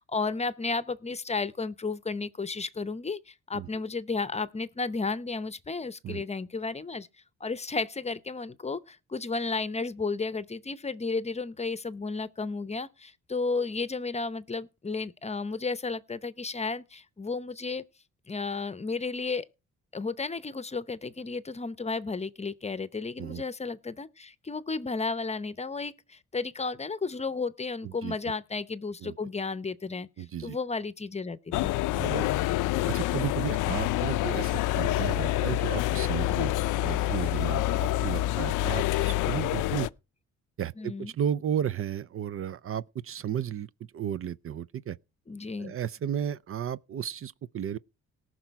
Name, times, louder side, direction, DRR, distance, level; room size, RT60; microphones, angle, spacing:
voice 1, 0.0-7.1 7.4-17.8 18.3-19.5 19.9-30.1 30.4-31.7 40.8-41.1 45.3-45.7, left 4 dB, 20° left, 0.8 m, -33 dB
voice 2, 27.8-28.2 29.0-29.2 30.2-30.6 31.9-32.3 32.9-36.5 36.8-39.9 40.6-45.0 45.6-47.8, right 9 dB, 45° right, 0.5 m, -33 dB
sound 1, 31.5-39.9, left 15 dB, 85° left, 0.5 m, -27 dB
18.5 x 6.1 x 4.6 m
cardioid pair, 90°, 30 cm